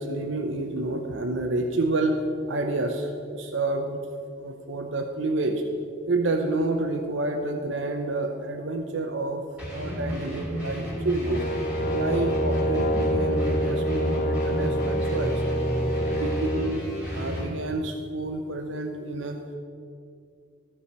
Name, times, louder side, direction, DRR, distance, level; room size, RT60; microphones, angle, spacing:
voice 1, 0.0-2.2 2.5-4.0 4.4-5.6 6.1-9.4 9.7-11.4 11.9-15.4 16.1-16.8 17.1-19.4, right 2 dB, 75° right, 5 dB, 0.7 m, -29 dB
sound 1, 9.6-17.5, equal, 5° right, 2.3 m, -33 dB
Brass instrument, 11.2-16.7, equal, 45° left, 1.1 m, -26 dB
14.5 x 4.9 x 6.7 m, 2.4 s
head